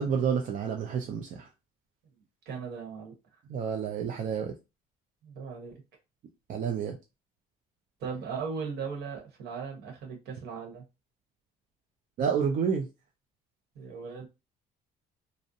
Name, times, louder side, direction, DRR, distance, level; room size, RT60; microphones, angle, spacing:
voice 1, 0.0-1.5 3.5-4.5 6.5-7.0 12.2-12.9, right 7 dB, 50° right, 0.4 m, -29 dB
voice 2, 2.5-3.1 5.2-5.8 8.0-10.8 13.7-14.3, right 5 dB, 75° right, 1.1 m, -38 dB
2.5 x 2.0 x 2.6 m
cardioid pair, 110°, 17 cm